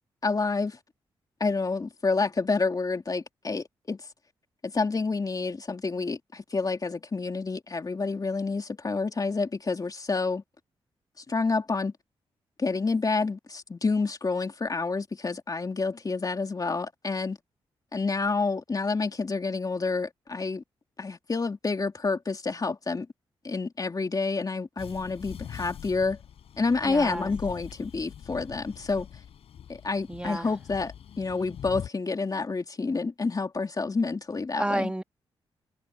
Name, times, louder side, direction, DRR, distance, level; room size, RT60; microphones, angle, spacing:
voice 1, 0.2-0.8 1.4-4.1 4.6-10.4 11.3-11.9 12.6-17.4 17.9-20.6 21.0-23.1 23.4-26.2 26.6-29.1 29.7-34.9, left 4 dB, 35° left, 2.7 m, -28 dB
sound 1, 24.8-31.9, left 9 dB, 80° left, 4.4 m, -43 dB
voice 2, 26.8-27.3 30.1-30.5 34.5-35.0, right 1 dB, 10° right, 1.6 m, -30 dB
cardioid pair, 60°, 10 cm